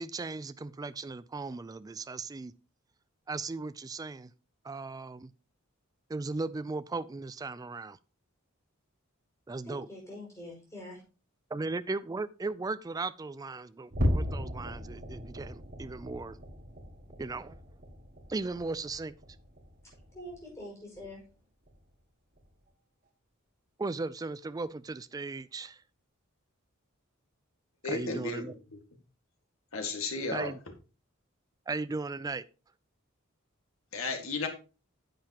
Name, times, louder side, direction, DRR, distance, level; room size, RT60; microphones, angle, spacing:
voice 1, 0.0-2.5 3.3-4.3 4.6-5.3 6.1-8.0 9.5-9.9 11.5-16.4 17.2-17.6 18.3-19.1 23.8-25.8 27.9-28.5 30.3-30.6 31.7-32.4, right 3 dB, 15° right, 15 dB, 0.3 m, -37 dB
voice 2, 9.6-11.0 20.1-21.2, left 1 dB, 15° left, -4 dB, 5.7 m, -44 dB
sound 1, 13.9-20.6 20.9-21.2 21.6-21.8 22.3-22.5, equal, 45° right, 1.7 m, -36 dB
voice 3, 27.8-28.4 29.7-30.5 33.9-34.5, left 3 dB, 70° left, 4 dB, 1.8 m, -33 dB
10.0 x 7.7 x 2.9 m, 0.34 s
head